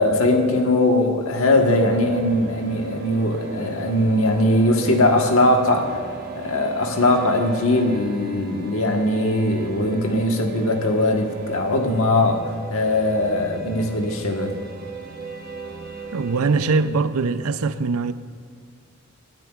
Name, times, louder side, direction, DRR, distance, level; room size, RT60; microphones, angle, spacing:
voice 1, 0.0-6.0 6.3-12.4 12.7-14.5, left 1 dB, 70° left, 1.4 m, -20 dB
sound 1, 1.5-16.9, right 4 dB, 45° right, 1.1 m, -38 dB
voice 2, 16.1-18.1, right 4 dB, 80° right, 0.5 m, -22 dB
21.5 x 12.0 x 2.4 m
head